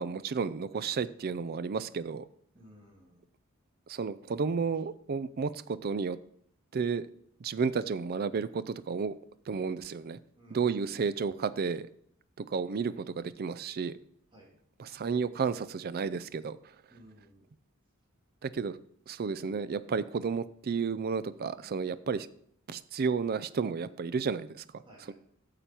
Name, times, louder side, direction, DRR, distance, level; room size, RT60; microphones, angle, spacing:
voice 1, 0.0-2.2 3.9-6.2 6.7-7.1 7.4-9.1 9.5-10.2 10.5-11.9 12.4-14.0 14.8-16.6 18.4-18.8 19.1-22.3 22.7-25.1, right 5 dB, 45° right, 15 dB, 0.4 m, -32 dB
voice 2, 2.5-3.2 10.4-10.9 14.3-14.5 16.9-17.5 24.8-25.1, equal, 25° right, -4 dB, 2.6 m, -56 dB
8.9 x 6.9 x 4.4 m, 0.66 s
head